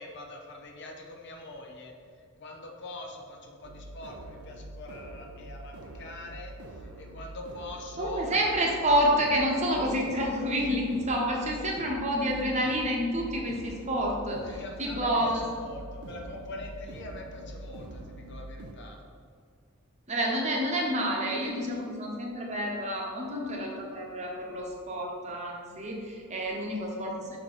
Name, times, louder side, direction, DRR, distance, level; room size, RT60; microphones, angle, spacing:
voice 1, 0.0-8.2 14.5-19.0, left 2 dB, 50° left, 2 dB, 0.8 m, -43 dB
sound 1, 3.6-18.7, right 1 dB, 75° right, 0.5 m, -44 dB
voice 2, 8.0-15.4 20.1-27.4, equal, 30° right, -1 dB, 1.0 m, -29 dB
6.0 x 4.8 x 4.1 m, 2.1 s
head